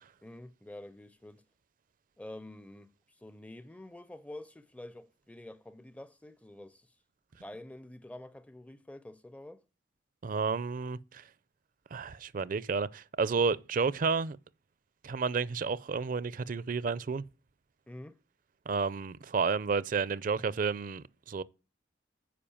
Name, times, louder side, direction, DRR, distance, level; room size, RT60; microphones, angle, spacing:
voice 1, 0.2-1.4 2.2-2.9 3.2-6.9 7.4-9.6 17.9-18.2, left 1 dB, 5° left, 0.4 m, -47 dB
voice 2, 10.2-11.2 11.9-14.4 15.0-17.2 18.7-21.4, right 5 dB, 45° right, 0.4 m, -31 dB
10.0 x 5.1 x 7.1 m
head